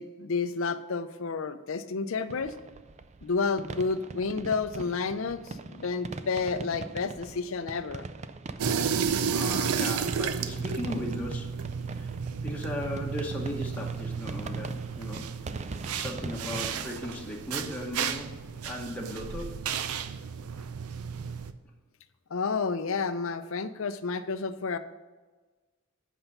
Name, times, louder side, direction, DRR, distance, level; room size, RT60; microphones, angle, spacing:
voice 1, 0.0-2.5 3.2-8.1 22.3-24.8, left 4 dB, 60° left, 11 dB, 0.5 m, -30 dB
sound 1, 2.3-16.9, right 3 dB, 30° right, 0.3 m, -41 dB
sound 2, 8.6-21.5, right 6 dB, 90° right, 0.5 m, -33 dB
voice 2, 9.3-11.5 11.9-12.1 12.4-15.3 15.9-18.4 18.6-19.6, equal, 5° left, -2 dB, 1.0 m, -36 dB
8.0 x 5.5 x 5.5 m, 1.3 s
head